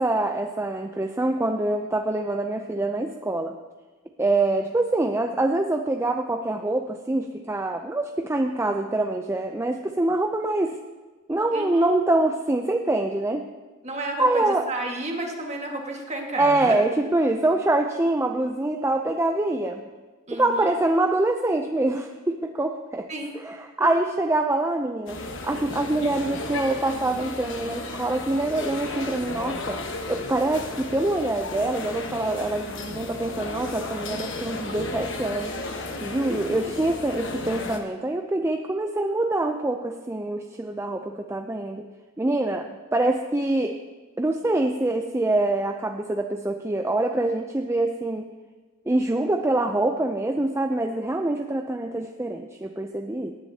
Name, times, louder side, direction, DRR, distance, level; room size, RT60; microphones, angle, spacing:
voice 1, 0.0-3.6 4.2-10.8 11.3-13.4 14.2-14.6 16.4-19.8 20.3-23.1 23.4-25.2 25.4-29.8 30.1-35.5 36.0-41.8 42.2-43.7 44.2-48.3 48.9-53.3, right 2 dB, 15° right, 4 dB, 0.5 m, -25 dB
voice 2, 11.3-12.0 13.8-16.8 20.3-20.8 23.1-23.3 36.0-36.5, right 2 dB, 35° right, 1 dB, 1.7 m, -32 dB
sound 1, 25.1-37.8, left 2 dB, 65° left, 1.2 m, -34 dB
18.0 x 10.5 x 2.8 m, 1.3 s
head